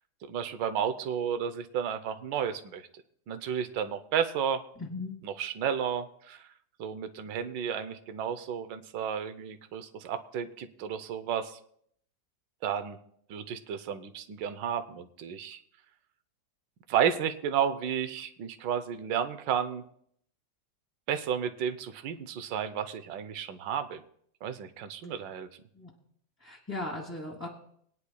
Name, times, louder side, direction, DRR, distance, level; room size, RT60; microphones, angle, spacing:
voice 1, 0.2-2.9 3.3-4.6 5.2-6.5 6.8-11.6 12.6-13.0 13.3-15.6 16.9-19.8 21.1-24.0 24.4-25.5, right 8 dB, 80° right, 9 dB, 1.4 m, -32 dB
voice 2, 4.8-5.2 25.7-25.9 26.4-27.5, left 2 dB, 10° left, -3 dB, 1.2 m, -37 dB
21.0 x 9.7 x 2.3 m, 0.66 s
omnidirectional pair, 2.0 m